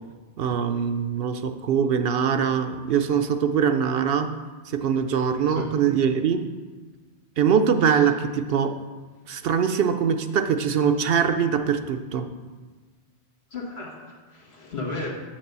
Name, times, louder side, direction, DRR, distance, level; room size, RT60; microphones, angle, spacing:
voice 1, 0.4-4.3 4.7-6.4 7.4-8.7 9.3-12.3, right 7 dB, 70° right, 8 dB, 0.8 m, -23 dB
voice 2, 5.5-5.8 7.8-8.0 13.5-15.1, left 3 dB, 75° left, -1 dB, 1.8 m, -34 dB
7.2 x 6.0 x 6.7 m, 1.4 s
omnidirectional pair, 1.1 m